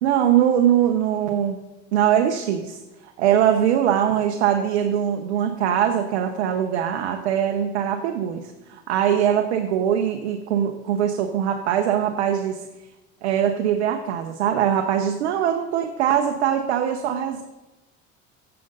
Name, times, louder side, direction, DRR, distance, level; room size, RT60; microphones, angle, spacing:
voice 1, 0.0-1.6 1.9-12.7 13.2-17.4, right 9 dB, 90° right, 5 dB, 0.8 m, -22 dB
8.7 x 6.9 x 5.3 m, 1.0 s
hypercardioid pair, 80°, 33 cm